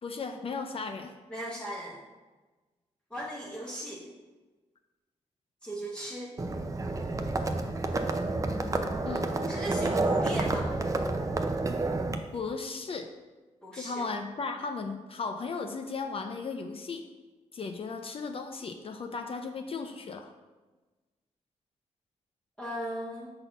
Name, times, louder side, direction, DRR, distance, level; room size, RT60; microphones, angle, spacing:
voice 1, 0.0-1.1 9.1-9.3 12.3-13.1 13.8-17.0 17.5-20.3, left 4 dB, 50° left, 5 dB, 0.6 m, -36 dB
voice 2, 1.3-2.0 3.1-4.1 5.6-6.3 9.5-10.7 13.6-14.0 22.6-23.3, right 1 dB, 5° left, -5 dB, 1.2 m, -37 dB
Livestock farm animals working animals, 6.4-12.2, right 2 dB, 25° right, 0.6 m, -29 dB
5.5 x 4.0 x 5.7 m, 1.2 s
cardioid pair, 90°, 13 cm